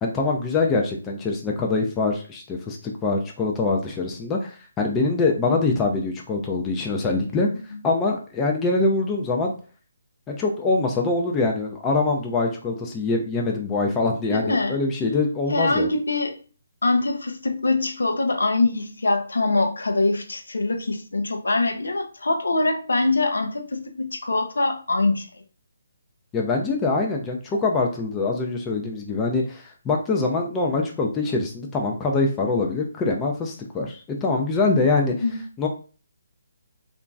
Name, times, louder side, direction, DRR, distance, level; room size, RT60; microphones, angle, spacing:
voice 1, 0.0-7.5 7.8-9.5 10.3-15.9 26.3-35.1 35.6-35.7, left 3 dB, 15° left, 0.4 m, -24 dB
voice 2, 14.3-14.8 15.5-16.4 16.8-25.3 35.1-35.4, left 2 dB, 85° left, 0.5 m, -23 dB
2.9 x 2.5 x 2.3 m
hypercardioid pair, 155°, 0 cm